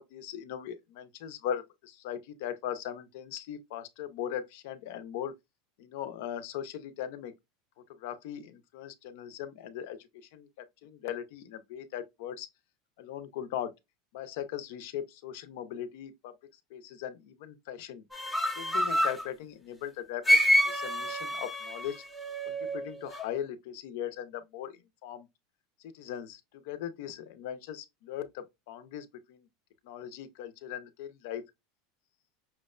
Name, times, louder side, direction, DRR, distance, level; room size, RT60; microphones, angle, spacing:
voice 1, 0.0-5.3 5.8-7.3 7.9-10.0 10.3-12.5 13.0-13.7 14.1-16.3 16.7-18.0 18.6-20.2 20.6-22.0 22.5-25.3 25.9-29.5 29.8-31.4, left 10 dB, 65° left, 0.6 m, -39 dB
sound 1, 18.1-19.2 20.3-23.3, equal, ahead, 0.7 m, -28 dB
5.7 x 2.1 x 2.3 m
supercardioid pair, 155°, 0 cm